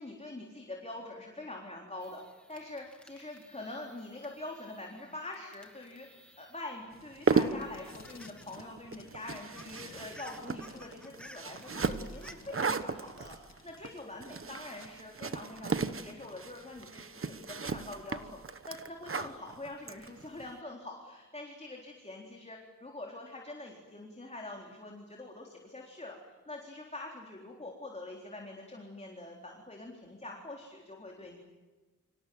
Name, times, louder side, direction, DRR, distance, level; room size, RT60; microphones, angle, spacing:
voice 1, 0.0-2.2 2.5-6.1 6.4-26.2 26.5-31.4, left 2 dB, 20° left, -1 dB, 3.9 m, -44 dB
sound 1, 2.0-6.9 7.3-8.6 8.9-9.0 9.3-12.3, equal, 5° left, 2.0 m, -56 dB
Packing tape duct tape, 6.9-8.7 8.9-14.0 14.8-14.9, left 5 dB, 60° left, 2.0 m, -55 dB
sound 2, 7.0-20.5, right 5 dB, 45° right, 1.2 m, -35 dB
30.0 x 25.5 x 7.9 m, 1.2 s
wide cardioid pair, 130°, 30 cm